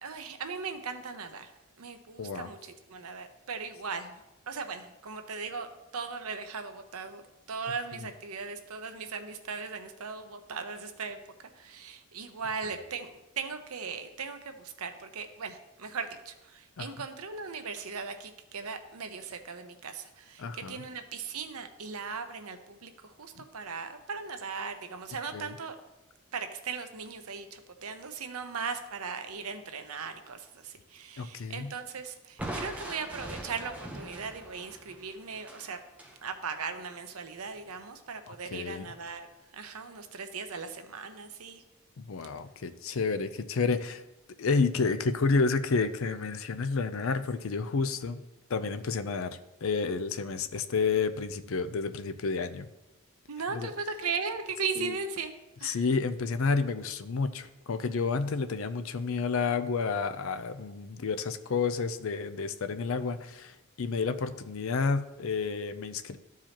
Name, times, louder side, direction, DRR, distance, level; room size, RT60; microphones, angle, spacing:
voice 1, 0.0-1.5 1.8-4.2 4.5-5.7 5.9-7.2 7.5-11.2 11.5-22.9 23.2-25.8 26.3-35.8 36.2-39.3 39.5-41.6 53.3-55.3 55.6-55.8, right 5 dB, 85° right, 7 dB, 0.8 m, -38 dB
voice 2, 20.4-20.8 25.3-25.5 31.2-31.7 38.3-38.9 42.0-44.0 44.4-48.2 48.5-52.6 53.5-53.7 54.8-55.0 55.6-66.2, left 4 dB, 65° left, 10 dB, 0.5 m, -30 dB
Crushing, 32.4-36.2, right 1 dB, 5° right, 0.8 m, -41 dB
13.0 x 4.8 x 2.9 m, 1.0 s
head